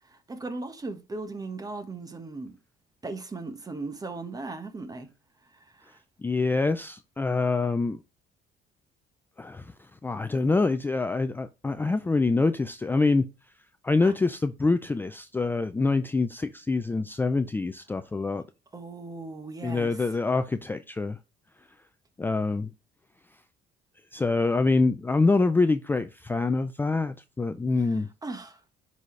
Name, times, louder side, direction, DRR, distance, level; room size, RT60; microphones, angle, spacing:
voice 1, 0.0-2.6 3.0-5.1 5.5-6.0 14.0-14.1 18.7-20.1 27.8-28.6, right 3 dB, 20° right, 1.2 m, -38 dB
voice 2, 6.2-8.0 9.4-9.7 10.0-13.3 13.8-18.4 19.6-21.2 22.2-22.7 24.1-28.1, left 3 dB, 10° left, 0.4 m, -25 dB
10.0 x 4.2 x 3.2 m
cardioid pair, 110°, 17 cm